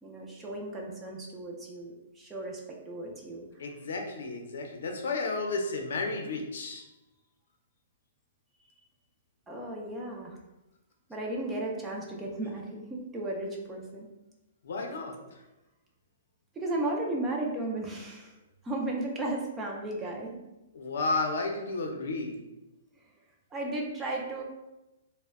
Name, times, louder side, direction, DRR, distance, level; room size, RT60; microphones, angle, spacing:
voice 1, 0.0-3.5 9.5-10.4 11.1-14.1 16.6-18.4 18.6-20.4 23.5-24.4, right 2 dB, 10° right, -1 dB, 0.3 m, -35 dB
voice 2, 3.6-6.8 14.6-15.4 20.7-22.5, left 3 dB, 70° left, 2 dB, 0.5 m, -32 dB
2.1 x 2.0 x 3.5 m, 0.99 s
hypercardioid pair, 160°, 0 cm